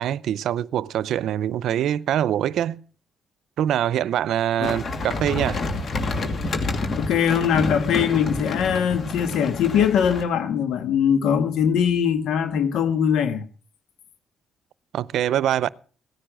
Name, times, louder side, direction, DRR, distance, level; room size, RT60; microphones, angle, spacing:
voice 1, 0.0-2.8 3.6-5.6 14.9-15.7, right 11 dB, 75° right, 0.6 m, -24 dB
sound 1, 4.6-10.2, left 3 dB, 50° left, 2.6 m, -28 dB
voice 2, 6.9-13.4, left 8 dB, 80° left, 1.5 m, -21 dB
17.0 x 10.0 x 6.3 m
cardioid pair, 90°, 0 cm